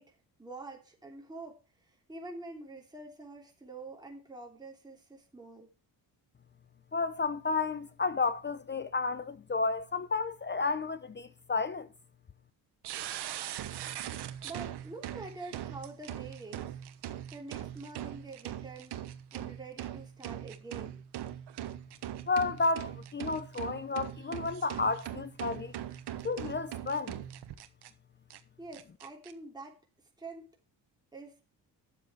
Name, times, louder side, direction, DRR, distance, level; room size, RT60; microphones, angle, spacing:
voice 1, 0.0-5.7 14.4-16.7 17.3-19.0 19.3-21.0 28.6-29.8 30.2-30.5 31.1-31.5, right 3 dB, 10° right, 3.1 m, -46 dB
voice 2, 6.9-11.9 22.3-25.7 26.2-27.1, left 4 dB, 25° left, 0.7 m, -32 dB
sound 1, 12.8-27.9 28.3-28.4 28.7-29.3, right 11 dB, 75° right, 1.2 m, -41 dB
10.0 x 7.3 x 4.7 m
cardioid pair, 100°, 40 cm